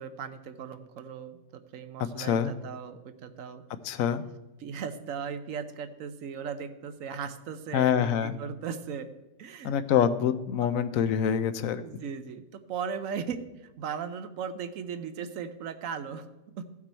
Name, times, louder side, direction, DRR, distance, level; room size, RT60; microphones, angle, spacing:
voice 1, 0.0-3.6 4.6-9.1 9.4-9.7 10.6-10.7 11.8-16.3 16.6-16.7, right 6 dB, 65° right, 9 dB, 1.0 m, -37 dB
voice 2, 2.2-2.5 3.8-4.2 7.7-8.4 9.6-11.8, left 8 dB, 70° left, 12 dB, 0.9 m, -25 dB
14.0 x 6.0 x 4.3 m, 1.1 s
omnidirectional pair, 1.7 m